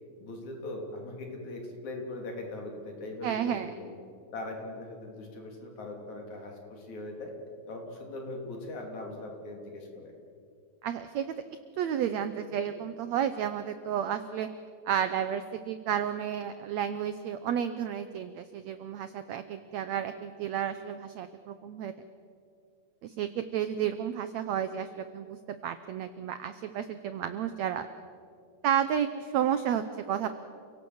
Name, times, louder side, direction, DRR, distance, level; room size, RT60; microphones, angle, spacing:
voice 1, 0.2-3.9 4.3-7.3 7.7-10.1, left 2 dB, 55° left, 2 dB, 4.4 m, -40 dB
voice 2, 3.2-3.7 10.8-11.3 11.8-14.5 14.9-21.9 23.0-25.4 25.6-27.9 28.6-30.3, right 9 dB, 80° right, 11 dB, 1.5 m, -31 dB
29.5 x 17.5 x 7.9 m, 2.4 s
omnidirectional pair, 4.2 m